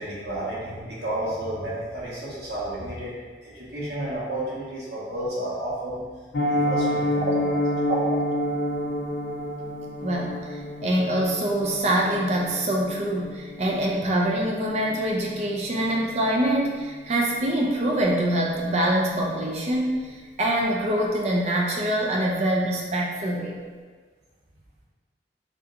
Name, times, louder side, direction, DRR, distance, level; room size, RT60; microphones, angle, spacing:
voice 1, 0.0-3.1 3.4-6.0 6.5-7.6, right 1 dB, 65° right, -8 dB, 1.0 m, -32 dB
Piano, 6.3-17.2 17.5-17.7 18.0-18.2 18.6-18.8 19.1-19.2, left 1 dB, 90° left, 0.5 m, -30 dB
voice 2, 10.0-20.1 20.4-23.6, right 1 dB, 40° right, -2 dB, 0.4 m, -25 dB
3.4 x 2.8 x 2.5 m, 1.5 s
head